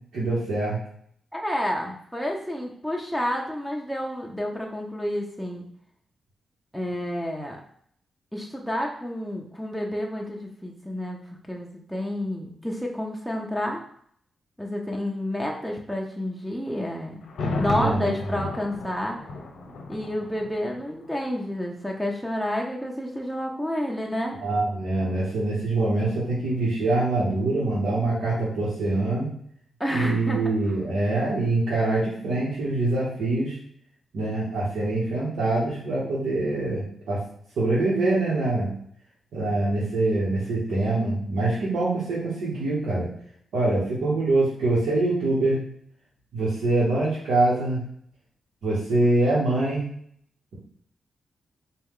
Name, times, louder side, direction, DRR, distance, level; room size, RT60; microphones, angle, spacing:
voice 1, 0.1-0.8 17.6-18.0 18.3-18.5 24.4-29.3 29.9-33.6 34.1-37.2 37.6-38.7 39.3-43.1 43.5-45.6 46.3-47.8 48.6-49.8, right 2 dB, 85° right, -8 dB, 1.1 m, -24 dB
voice 2, 1.3-5.7 6.7-7.6 8.3-11.2 11.5-13.8 14.6-17.2 17.6-19.2 19.9-24.4 29.8-30.4, left 1 dB, ahead, 0 dB, 0.6 m, -30 dB
Thunder, 17.2-21.1 21.4-21.5, left 3 dB, 80° left, 0.9 m, -33 dB
4.3 x 2.3 x 3.6 m, 0.65 s
cardioid pair, 75°, 0 cm